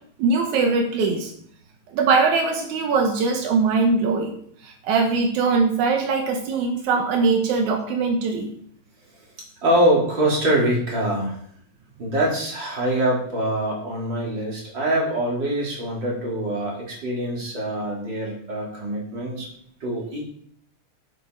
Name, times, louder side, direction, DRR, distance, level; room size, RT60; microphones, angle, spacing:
voice 1, 0.2-1.3 1.9-8.5, right 4 dB, 85° right, 3 dB, 2.5 m, -21 dB
voice 2, 9.6-11.4 12.0-19.5 19.8-20.2, right 1 dB, 40° right, -4 dB, 3.8 m, -24 dB
8.4 x 8.2 x 4.7 m, 0.63 s
omnidirectional pair, 3.3 m